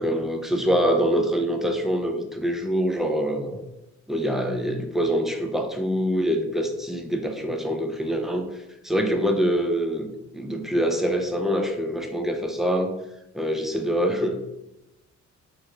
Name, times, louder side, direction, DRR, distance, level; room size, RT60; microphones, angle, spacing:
voice 1, 0.0-3.6 4.1-13.0 13.3-14.3, equal, ahead, 4 dB, 0.3 m, -25 dB
3.1 x 2.5 x 2.9 m, 0.90 s
cardioid pair, 90°, 30 cm